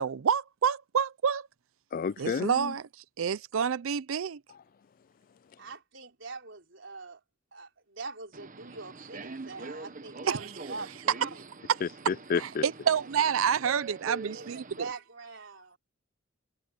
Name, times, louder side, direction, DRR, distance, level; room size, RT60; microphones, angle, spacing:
voice 1, 0.0-1.5 2.2-2.8 3.2-4.4 10.3-10.4 12.4-14.6, right 7 dB, 80° right, 0.5 m, -28 dB
voice 2, 1.9-2.7 11.8-12.6, left 6 dB, 45° left, 0.3 m, -31 dB
voice 3, 5.6-7.2 7.5-11.4 12.6-13.1 14.3-15.8, right 3 dB, 65° right, 4.4 m, -43 dB
Subway metro underground, 8.3-14.9, right 3 dB, 40° right, 1.1 m, -44 dB
head